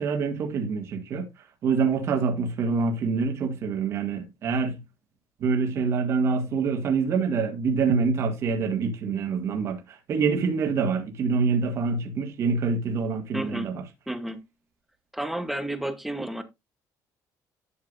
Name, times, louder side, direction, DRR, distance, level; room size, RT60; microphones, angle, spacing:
voice 1, 0.0-4.8 5.4-13.8, right 5 dB, 45° right, 1.8 m, -26 dB
voice 2, 13.3-13.7 14.1-14.4 15.1-16.4, right 1 dB, 5° right, 1.0 m, -31 dB
11.5 x 7.1 x 2.5 m
cardioid pair, 165°, 7 cm